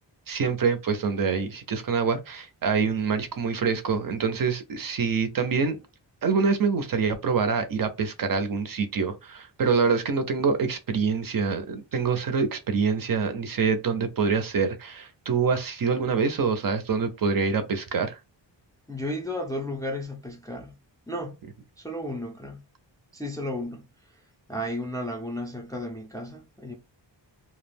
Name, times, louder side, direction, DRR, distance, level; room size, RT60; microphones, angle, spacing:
voice 1, 0.3-5.8 6.2-18.2, right 5 dB, 50° right, 0.5 m, -25 dB
voice 2, 18.9-20.7 21.1-21.4 21.8-22.6 23.1-23.9 24.5-26.7, left 1 dB, 10° left, 0.3 m, -33 dB
2.3 x 2.0 x 3.3 m
wide cardioid pair, 155°, 45 cm